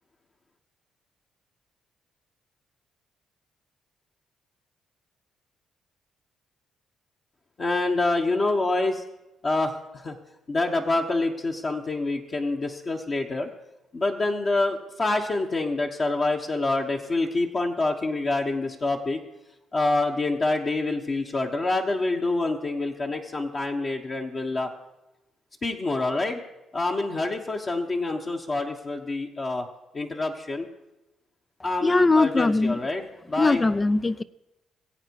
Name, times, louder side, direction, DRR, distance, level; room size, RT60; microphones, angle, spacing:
voice 1, 7.6-9.0 9.4-10.2 10.5-13.5 13.9-19.2 19.7-24.7 25.6-26.4 26.7-29.7 29.9-30.7 31.6-33.6, left 2 dB, 40° left, 1 dB, 1.3 m, -26 dB
voice 2, 31.8-32.8 33.4-34.2, left 3 dB, 20° left, 13 dB, 0.4 m, -21 dB
21.0 x 8.3 x 4.7 m, 1.0 s
cardioid pair, 90°, 0 cm